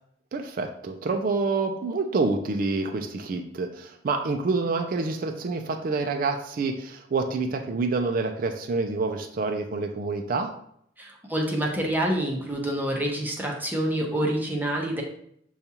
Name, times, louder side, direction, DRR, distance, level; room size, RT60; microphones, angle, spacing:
voice 1, 0.3-10.5, right 3 dB, 50° right, 5 dB, 0.4 m, -27 dB
voice 2, 11.0-15.0, right 1 dB, 10° right, 0 dB, 0.6 m, -27 dB
6.7 x 2.4 x 2.8 m, 0.69 s
head